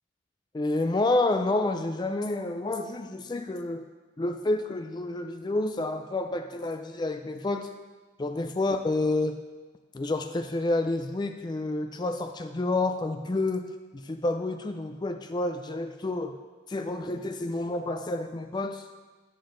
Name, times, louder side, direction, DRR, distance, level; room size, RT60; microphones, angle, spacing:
voice 1, 0.5-3.9 4.2-7.7 8.2-9.4 9.9-13.7 13.9-16.4 16.7-18.8, left 2 dB, 25° left, 7 dB, 0.4 m, -29 dB
9.4 x 6.9 x 3.8 m, 1.3 s
head